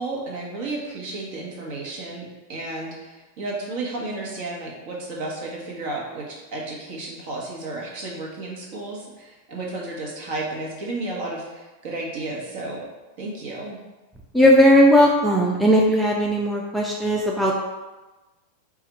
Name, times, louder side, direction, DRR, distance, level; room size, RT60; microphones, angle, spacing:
voice 1, 0.0-12.8 13.2-13.8, right 2 dB, 50° right, -3 dB, 1.2 m, -32 dB
voice 2, 14.3-17.6, equal, ahead, -3 dB, 0.5 m, -17 dB
4.8 x 2.5 x 4.3 m, 1.1 s
figure-of-eight pair, 90°, 0 cm